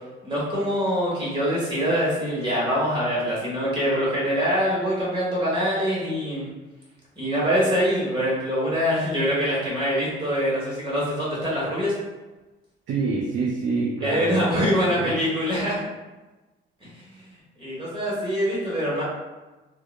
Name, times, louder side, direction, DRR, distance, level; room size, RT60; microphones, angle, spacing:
voice 1, 0.2-6.5 7.2-11.9 14.0-15.8 16.8-17.0 17.6-19.0, equal, 25° right, -6 dB, 1.2 m, -24 dB
voice 2, 12.9-15.2, right 3 dB, 75° right, -2 dB, 0.5 m, -27 dB
2.7 x 2.1 x 2.3 m, 1.2 s
cardioid pair, 90°, 20 cm